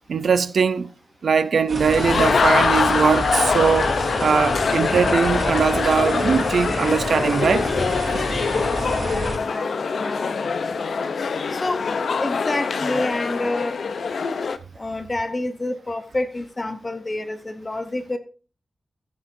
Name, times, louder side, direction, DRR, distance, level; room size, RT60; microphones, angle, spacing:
voice 1, 0.1-0.9 1.2-3.9 4.2-7.7 8.0-8.2, right 6 dB, 75° right, 0.5 m, -20 dB
sound 1, 1.7-9.4, right 2 dB, 55° right, 3.9 m, -30 dB
sound 2, 1.8-14.6, left 5 dB, 70° left, 0.6 m, -23 dB
voice 2, 8.8-10.3 11.5-11.9 12.2-13.8 14.8-18.2, left 2 dB, 25° left, 0.8 m, -28 dB
14.5 x 8.5 x 2.6 m
wide cardioid pair, 160°, 0 cm